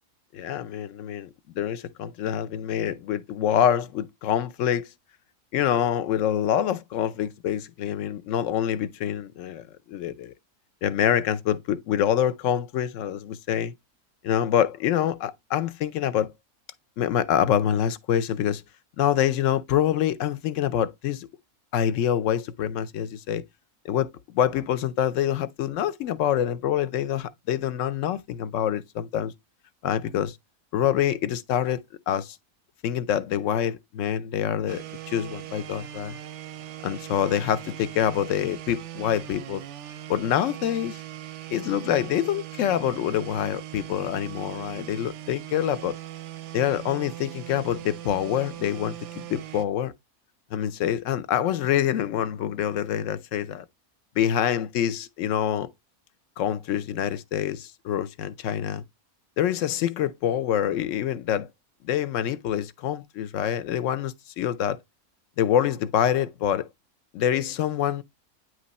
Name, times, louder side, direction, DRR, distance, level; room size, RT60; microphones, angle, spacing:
voice 1, 0.3-1.3 1.6-4.9 5.5-10.3 10.8-13.7 14.2-16.3 17.0-18.6 19.0-21.3 21.7-23.4 23.8-29.3 29.8-30.4 30.7-31.8 32.1-32.4 32.8-36.1 36.8-39.6 40.1-41.0 41.5-45.9 46.5-49.9 50.5-53.6 54.2-55.7 56.4-58.8 59.4-61.5 61.8-64.8 65.4-66.7 67.1-68.0, left 10 dB, 65° left, 0.9 m, -26 dB
sound 1, 34.7-49.7, right 13 dB, 65° right, 0.8 m, -40 dB
9.3 x 3.2 x 4.0 m
omnidirectional pair, 1.6 m